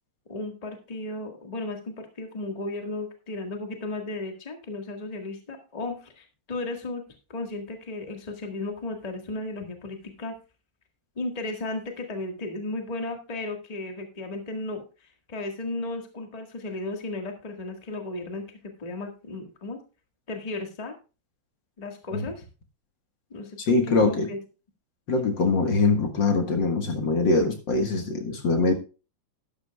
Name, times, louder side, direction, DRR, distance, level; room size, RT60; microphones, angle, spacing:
voice 1, 0.3-7.0 7.3-10.3 11.1-18.4 18.8-19.8 20.3-20.9 21.8-22.4 23.3-23.6 23.8-24.4, left 2 dB, 80° left, 3 dB, 0.3 m, -35 dB
voice 2, 23.7-24.3 25.1-28.7, left 3 dB, 45° left, 5 dB, 1.6 m, -23 dB
12.0 x 12.0 x 2.3 m, 0.32 s
omnidirectional pair, 3.9 m